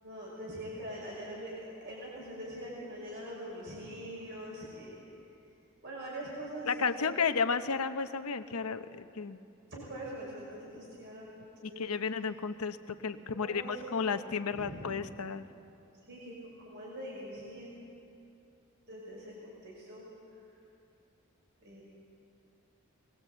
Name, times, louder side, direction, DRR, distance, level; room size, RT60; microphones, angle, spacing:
voice 1, 0.0-5.1 5.8-7.2 9.7-11.9 13.3-13.9 14.5-14.9 15.9-16.3 16.6-17.9 18.9-20.0 21.6-21.8, right 1 dB, 55° right, -5 dB, 5.5 m, -43 dB
voice 2, 6.7-9.4 11.6-15.5, left 5 dB, 90° left, 9 dB, 0.9 m, -33 dB
23.0 x 20.0 x 8.1 m, 2.7 s
head